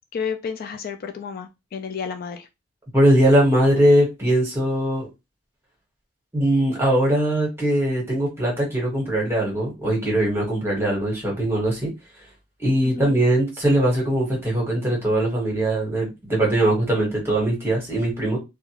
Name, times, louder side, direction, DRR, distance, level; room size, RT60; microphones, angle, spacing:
voice 1, 0.1-2.5 12.9-13.2, left 6 dB, 50° left, 0.3 m, -31 dB
voice 2, 2.9-5.1 6.3-11.9 12.6-18.4, right 1 dB, 15° right, 1.2 m, -21 dB
2.4 x 2.3 x 2.9 m
head